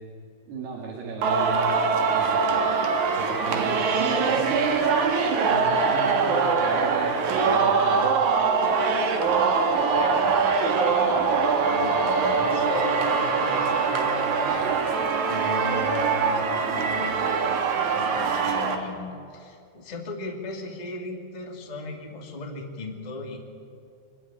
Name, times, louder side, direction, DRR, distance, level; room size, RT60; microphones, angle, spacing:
voice 1, 0.5-4.7 5.5-8.1, right 3 dB, 75° right, -2 dB, 4.3 m, -36 dB
Singing, 1.2-18.7, right 5 dB, 55° right, 2.8 m, -23 dB
voice 2, 9.1-14.7 15.3-23.4, left 3 dB, 15° left, 2 dB, 1.3 m, -37 dB
23.5 x 13.5 x 9.9 m, 2.4 s
omnidirectional pair, 4.6 m